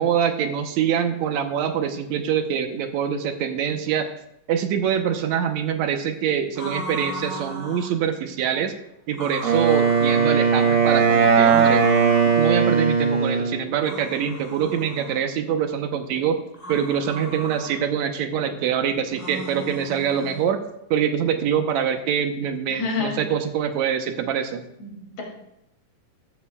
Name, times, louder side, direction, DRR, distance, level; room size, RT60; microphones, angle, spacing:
voice 1, 0.0-4.1 4.5-8.7 9.1-11.9 12.4-16.4 16.7-20.6 20.9-24.6, right 8 dB, 75° right, 7 dB, 2.1 m, -24 dB
sound 1, 6.5-8.0 9.1-10.3 11.4-12.4 13.8-15.2 16.5-17.8 19.1-20.5, right 1 dB, 5° left, 4.6 m, -36 dB
Wind instrument woodwind instrument, 9.4-13.6, right 6 dB, 35° right, 1.6 m, -18 dB
voice 2, 22.7-23.2 24.8-25.2, left 4 dB, 65° left, -2 dB, 3.9 m, -28 dB
14.5 x 13.0 x 2.3 m, 0.82 s
omnidirectional pair, 3.4 m